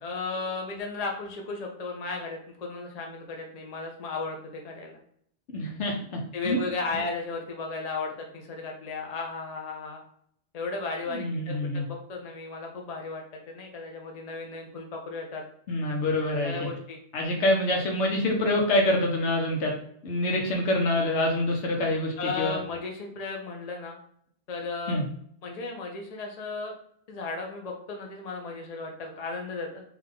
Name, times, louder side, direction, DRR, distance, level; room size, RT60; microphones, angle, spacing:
voice 1, 0.0-5.0 6.3-10.0 10.5-15.4 16.4-17.0 22.2-24.0 24.5-25.0 25.4-26.7 27.1-29.8, left 3 dB, 40° left, 1 dB, 0.8 m, -35 dB
voice 2, 5.5-6.6 11.1-11.9 15.7-16.7 17.1-19.8 20.0-22.6 24.9-25.1, left 1 dB, 85° left, 1 dB, 1.2 m, -26 dB
3.6 x 3.0 x 3.6 m, 0.66 s
omnidirectional pair, 1.1 m